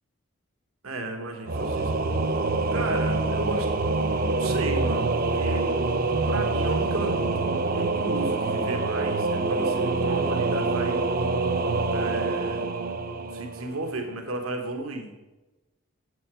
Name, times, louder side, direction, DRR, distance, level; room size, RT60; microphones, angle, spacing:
voice 1, 0.8-1.9 2.7-3.7 4.4-5.7 6.3-7.2 7.7-11.1 11.9-12.7 13.3-15.1, right 2 dB, 90° right, 5 dB, 1.2 m, -34 dB
Singing / Musical instrument, 1.5-14.0, right 3 dB, 45° right, 0.5 m, -26 dB
8.2 x 7.5 x 6.1 m, 1.1 s
head